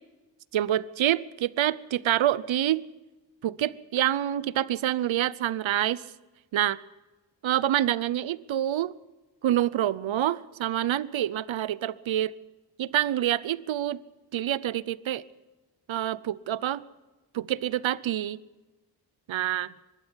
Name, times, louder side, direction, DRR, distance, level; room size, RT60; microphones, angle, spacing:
voice 1, 0.5-2.8 3.4-6.0 6.5-6.8 7.4-8.9 9.4-12.3 12.8-14.0 14.3-15.2 15.9-16.8 17.3-18.4 19.3-19.7, right 12 dB, 85° right, 19 dB, 0.8 m, -27 dB
23.0 x 12.5 x 10.0 m, 1.2 s
wide cardioid pair, 90°, 45 cm